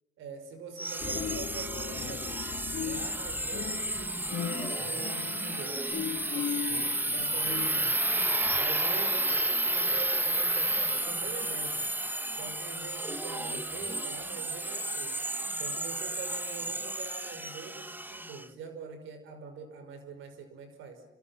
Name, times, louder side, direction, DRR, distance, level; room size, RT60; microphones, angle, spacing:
voice 1, 0.2-2.4 2.8-5.9 6.3-8.0 8.5-11.9 12.3-15.2 15.5-21.0, right 4 dB, 85° right, 8 dB, 5.5 m, -44 dB
sound 1, 0.8-18.4, right 1 dB, 10° right, 1.3 m, -31 dB
sound 2, 1.0-8.5, left 6 dB, 45° left, 2.3 m, -46 dB
sound 3, 1.1-8.0, left 10 dB, 65° left, 1.5 m, -39 dB
28.5 x 27.0 x 5.9 m, 0.92 s
cardioid pair, 90°, 20 cm